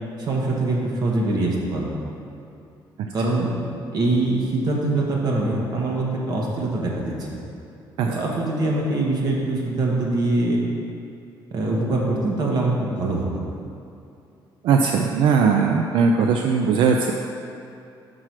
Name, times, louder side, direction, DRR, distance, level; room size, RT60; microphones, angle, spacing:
voice 1, 0.2-2.0 3.1-3.6 3.9-7.1 8.0-10.6 11.5-13.5, right 2 dB, 55° right, -2 dB, 1.3 m, -23 dB
voice 2, 14.6-17.1, right 5 dB, 80° right, 3 dB, 0.4 m, -19 dB
6.1 x 4.8 x 5.8 m, 2.7 s
cardioid pair, 140°, 8 cm